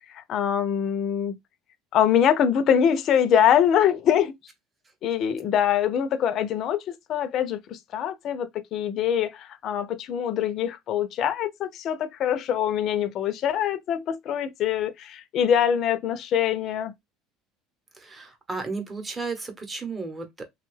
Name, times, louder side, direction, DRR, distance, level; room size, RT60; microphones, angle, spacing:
voice 1, 0.1-1.4 1.9-4.3 5.0-6.8 7.1-16.9, left 9 dB, 45° left, 0.5 m, -24 dB
voice 2, 17.9-20.4, right 4 dB, 20° right, 0.9 m, -34 dB
3.3 x 2.2 x 3.1 m
cardioid pair, 140°, 0 cm